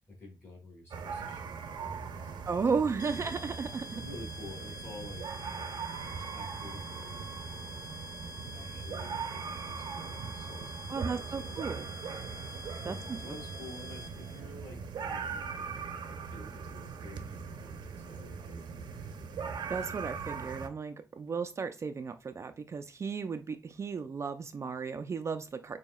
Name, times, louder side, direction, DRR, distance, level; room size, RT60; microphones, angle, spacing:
voice 1, 0.1-2.5 2.7-3.3 3.9-5.9 6.3-7.8 8.5-12.2 12.7-19.6, left 1 dB, 30° left, 2.7 m, -51 dB
sound 1, 0.9-20.7, right 5 dB, 80° right, 0.7 m, -40 dB
voice 2, 2.5-4.0 10.9-11.9 12.9-13.4 19.7-25.8, right 5 dB, 40° right, 0.4 m, -34 dB
sound 2, 3.0-14.4, left 1 dB, 65° left, 1.2 m, -46 dB
6.9 x 2.8 x 2.3 m
wide cardioid pair, 125°, 8 cm